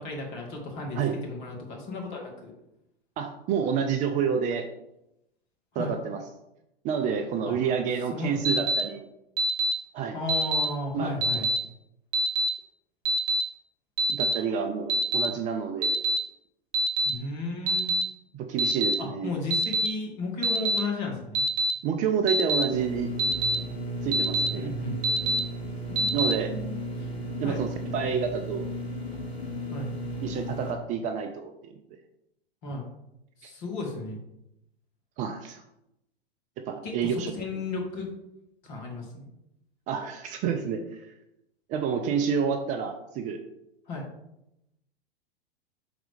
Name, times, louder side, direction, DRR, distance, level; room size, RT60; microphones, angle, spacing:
voice 1, 0.0-2.5 5.7-5.9 7.4-7.6 8.1-8.6 10.1-11.5 17.0-17.9 19.0-21.4 24.6-25.0 25.9-27.1 27.4-27.6 29.7-29.9 32.6-32.9 33.4-34.2 36.8-38.1 38.6-39.3 43.9-44.1, left 3 dB, 45° left, 0 dB, 2.3 m, -34 dB
voice 2, 3.2-4.7 5.8-6.2 6.8-9.1 9.9-10.2 10.9-11.1 14.1-16.0 18.3-19.4 21.8-23.1 24.0-24.7 26.1-26.6 27.4-28.7 30.2-32.0 33.4-33.5 35.2-35.6 36.6-37.3 39.9-41.1 41.7-43.4, right 6 dB, 25° right, 6 dB, 0.5 m, -29 dB
Alarm, 8.4-8.8 9.4-9.7 10.3-10.6 11.2-11.6 12.1-12.5 13.0-13.4 14.0-14.3 14.9-15.3 15.8-16.2 16.7-17.1 17.7-18.0 18.6-18.9 19.5-19.9 20.4-20.8 21.3-21.7 22.3-22.6 23.2-23.5 24.1-24.5 25.0-25.4 26.0-26.3, right 1 dB, 40° right, 1.3 m, -24 dB
sound 1, 22.7-30.7, right 1 dB, 85° left, 1.4 m, -34 dB
6.0 x 4.1 x 4.9 m, 0.85 s
figure-of-eight pair, 100°, 31 cm